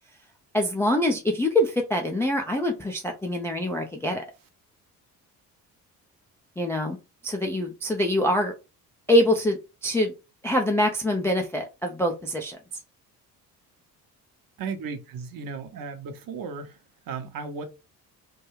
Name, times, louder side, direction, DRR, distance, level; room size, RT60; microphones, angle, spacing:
voice 1, 0.5-4.2 6.6-7.0 7.2-8.5 9.1-10.1 10.4-12.6, left 1 dB, 5° left, 0.3 m, -24 dB
voice 2, 14.6-17.6, right 5 dB, 45° right, 0.7 m, -35 dB
2.3 x 2.3 x 3.1 m
figure-of-eight pair, 50°, 47 cm